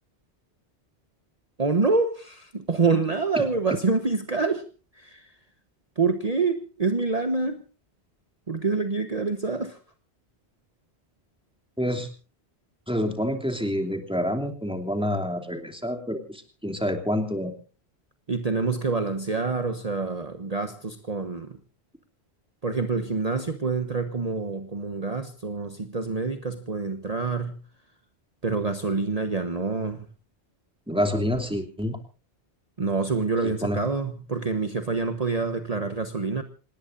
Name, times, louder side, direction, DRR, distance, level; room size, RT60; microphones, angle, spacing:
voice 1, 1.6-4.6 4.9-5.3 6.0-7.6 8.5-9.8 18.3-21.6 22.6-27.6 28.4-30.1 32.8-36.4, right 4 dB, 35° right, 8 dB, 1.2 m, -26 dB
voice 2, 11.8-12.1 12.9-17.5 30.9-32.0 33.4-33.8, equal, 5° right, 5 dB, 2.8 m, -27 dB
27.5 x 18.5 x 2.6 m, 0.36 s
omnidirectional pair, 1.1 m